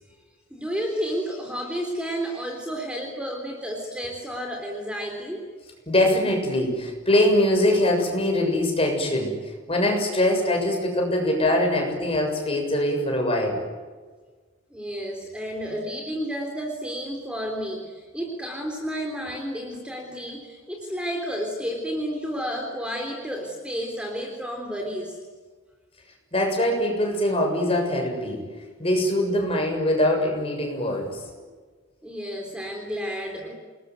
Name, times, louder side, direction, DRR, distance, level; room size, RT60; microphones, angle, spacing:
voice 1, 0.5-5.5 14.7-25.2 32.0-33.5, equal, 5° right, 1 dB, 3.8 m, -31 dB
voice 2, 5.9-9.4 9.7-13.6 26.3-28.5 28.8-31.3, left 1 dB, 30° left, 2 dB, 7.0 m, -23 dB
28.5 x 20.5 x 9.5 m, 1.5 s
head